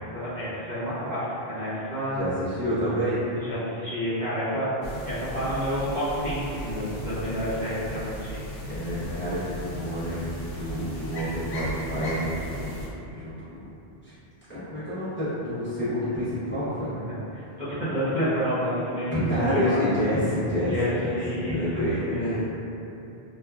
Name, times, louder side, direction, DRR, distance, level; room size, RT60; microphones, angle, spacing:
voice 1, 0.1-2.2 3.3-4.7 5.0-8.4 17.3-19.8 20.7-20.9 21.1-22.5, equal, 50° right, -12 dB, 0.8 m, -29 dB
voice 2, 2.2-3.2 8.7-10.2 10.5-12.8 13.1-13.6 14.0-14.1 14.5-16.9 19.1-20.7 21.0-21.1 21.5-22.5, equal, 15° left, -14 dB, 0.6 m, -28 dB
sound 1, 4.8-12.9, equal, 70° left, 0.8 m, -36 dB
3.3 x 2.2 x 2.3 m, 2.9 s
omnidirectional pair, 1.0 m